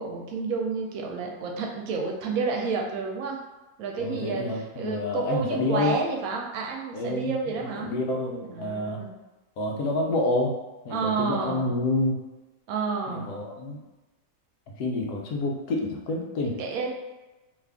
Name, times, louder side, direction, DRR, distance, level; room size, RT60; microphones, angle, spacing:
voice 1, 0.0-3.4 3.8-7.9 8.5-9.1 10.9-11.7 12.7-13.3 16.6-17.0, right 4 dB, 75° right, 1 dB, 1.0 m, -30 dB
voice 2, 4.0-6.0 6.9-7.3 7.6-9.0 9.6-10.6 10.8-12.2 13.1-13.8 14.8-16.6, left 2 dB, 80° left, 0 dB, 1.1 m, -28 dB
2.9 x 2.5 x 3.3 m, 1.1 s
omnidirectional pair, 1.6 m